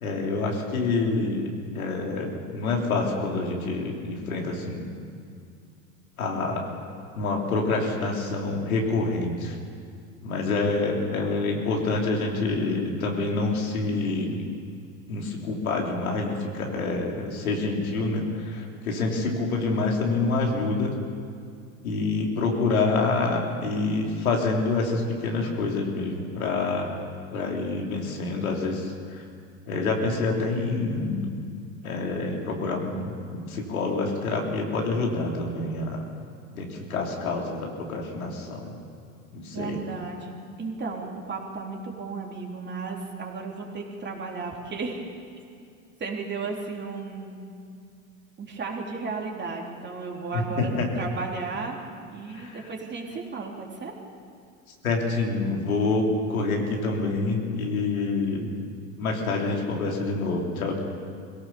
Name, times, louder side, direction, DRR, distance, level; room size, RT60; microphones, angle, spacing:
voice 1, 0.0-1.5 1.7-4.9 6.2-6.6 7.2-9.5 10.2-14.4 15.1-21.0 21.8-26.9 27.3-28.9 29.7-31.3 31.8-36.0 36.5-38.7 39.3-39.8 50.3-50.9 52.3-52.6 54.8-58.5 59.0-60.8, left 3 dB, 85° left, 0 dB, 3.4 m, -27 dB
voice 2, 39.5-45.0 46.0-47.4 48.4-51.8 52.1-53.9, right 4 dB, 25° right, 0 dB, 3.7 m, -34 dB
22.0 x 17.0 x 7.1 m, 2.3 s
hypercardioid pair, 95°, 41 cm